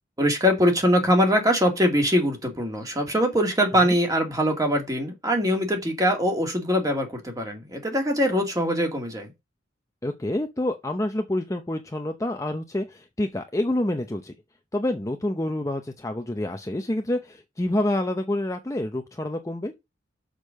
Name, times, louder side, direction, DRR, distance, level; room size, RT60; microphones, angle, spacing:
voice 1, 0.2-9.3, equal, 20° right, 2.1 m, -22 dB
voice 2, 10.0-14.3 14.7-19.7, left 1 dB, 15° left, 0.7 m, -27 dB
6.5 x 5.2 x 6.4 m
head